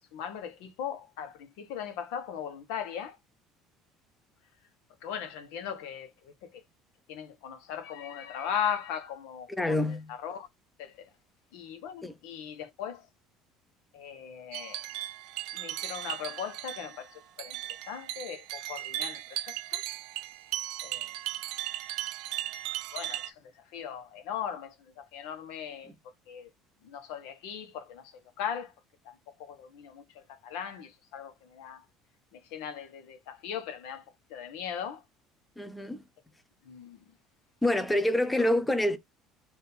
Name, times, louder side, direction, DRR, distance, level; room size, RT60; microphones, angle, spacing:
voice 1, 0.1-3.2 5.0-6.6 7.1-10.5 10.8-11.1 11.5-13.1 13.9-14.9 15.5-19.8 20.8-21.1 22.9-25.9 26.3-26.5 26.8-28.7 29.0-31.8 32.3-34.0 34.3-35.0 36.6-37.1 38.3-38.5, left 8 dB, 80° left, 1.1 m, -39 dB
voice 2, 9.6-10.1 12.0-12.1 35.6-36.0 37.6-39.0, left 1 dB, 5° left, 0.5 m, -27 dB
sound 1, 14.5-23.3, right 14 dB, 65° right, 0.5 m, -37 dB
3.6 x 2.7 x 4.3 m
cardioid pair, 165°, 0 cm